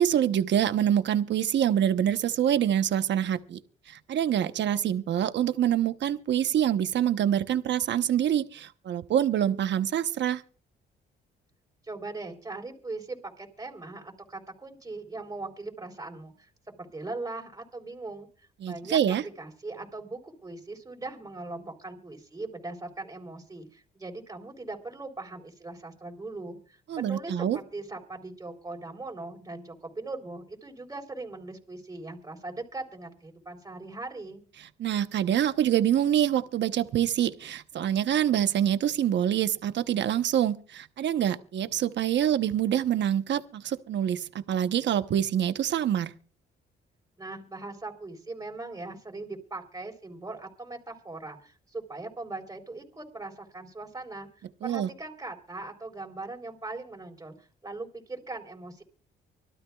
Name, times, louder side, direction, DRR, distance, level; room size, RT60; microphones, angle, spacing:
voice 1, 0.0-3.6 3.9-10.4 18.6-19.2 26.9-27.6 34.8-46.1 54.6-54.9, right 10 dB, 65° right, 1.0 m, -26 dB
voice 2, 11.9-18.3 18.6-34.4 47.2-54.3 54.6-58.8, right 2 dB, 15° right, 4.0 m, -40 dB
25.0 x 13.0 x 2.4 m
cardioid pair, 90°, 20 cm